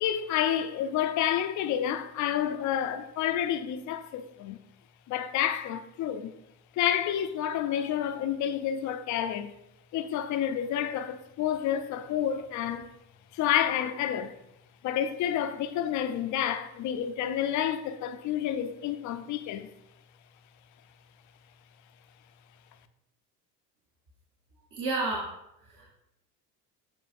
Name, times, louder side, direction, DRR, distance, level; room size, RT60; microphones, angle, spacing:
voice 1, 0.0-4.6 5.1-6.3 6.8-9.5 9.9-12.9 13.3-14.4 14.8-19.7, left 10 dB, 40° left, 0.6 m, -29 dB
voice 2, 24.7-25.3 25.6-25.9, right 3 dB, 40° right, 1.3 m, -31 dB
7.7 x 5.0 x 2.6 m
figure-of-eight pair, 65°, 49 cm